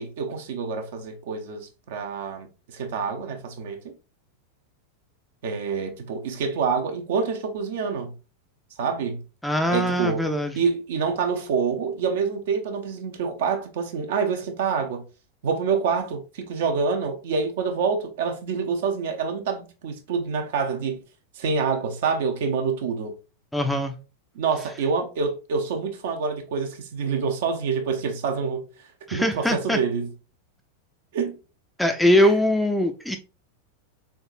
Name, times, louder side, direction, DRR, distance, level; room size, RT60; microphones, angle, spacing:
voice 1, 0.0-3.9 5.4-8.1 8.8-9.2 9.7-10.2 10.6-15.0 15.4-21.0 21.4-23.2 24.4-28.7 29.1-30.1 31.1-31.3, right 5 dB, 55° right, 0.8 m, -27 dB
voice 2, 9.4-10.6 23.5-23.9 29.1-29.8 31.8-33.2, left 1 dB, 5° left, 0.5 m, -22 dB
3.8 x 3.5 x 2.6 m
figure-of-eight pair, 90°, 0 cm